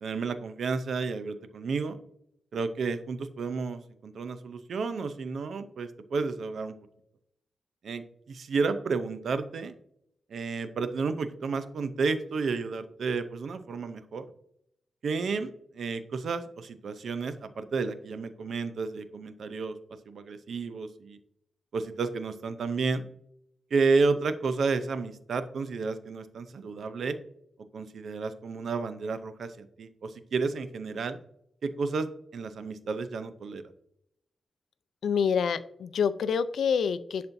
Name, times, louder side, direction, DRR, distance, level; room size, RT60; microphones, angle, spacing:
voice 1, 0.0-2.0 2.5-6.8 7.8-9.7 10.3-14.3 15.0-19.8 20.1-21.2 21.7-23.1 23.7-27.2 27.7-31.2 31.6-33.6, right 4 dB, 75° right, 11 dB, 0.6 m, -31 dB
voice 2, 35.0-37.3, left 6 dB, 85° left, 13 dB, 0.4 m, -27 dB
10.5 x 4.2 x 2.7 m, 0.74 s
cardioid pair, 85°, 0 cm